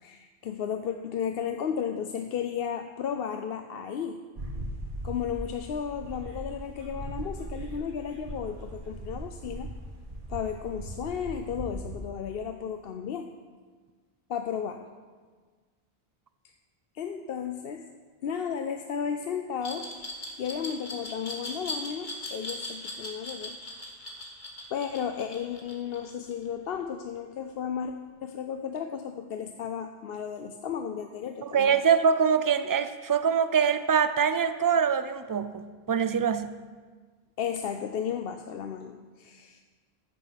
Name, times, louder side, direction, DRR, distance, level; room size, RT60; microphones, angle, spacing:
voice 1, 0.0-4.2 5.0-9.7 10.3-13.3 14.3-14.9 16.9-17.8 18.2-19.9 20.4-23.6 24.7-27.9 28.2-31.8 37.4-39.6, left 7 dB, 70° left, 6 dB, 0.8 m, -34 dB
sound 1, 4.4-12.0, right 1 dB, 55° right, 1.7 m, -39 dB
Glass, 19.6-26.5, left 2 dB, 50° left, 2.0 m, -38 dB
voice 2, 31.4-36.5, right 7 dB, 35° right, 11 dB, 0.3 m, -24 dB
14.0 x 7.3 x 5.8 m, 1.5 s
omnidirectional pair, 1.0 m